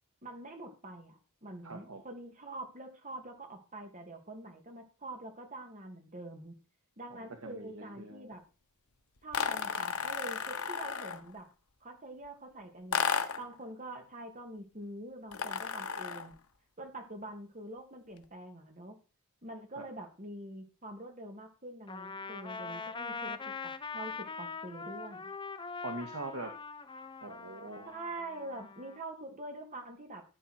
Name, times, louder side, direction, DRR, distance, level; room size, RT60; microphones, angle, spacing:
voice 1, 0.2-6.5 7.0-8.4 9.2-11.5 11.8-13.0 13.4-16.3 16.8-19.0 19.4-25.3 27.9-30.2, right 1 dB, 35° right, 4 dB, 2.7 m, -45 dB
voice 2, 1.6-2.0 7.4-8.3 25.8-26.5 27.2-27.9, right 2 dB, 70° right, 4 dB, 2.1 m, -42 dB
sound 1, 9.3-11.3 12.9-13.5 15.3-16.3, left 6 dB, 80° left, 1.2 m, -33 dB
Trumpet, 21.9-29.0, left 4 dB, 20° left, 0.9 m, -42 dB
16.0 x 9.1 x 4.6 m, 0.36 s
head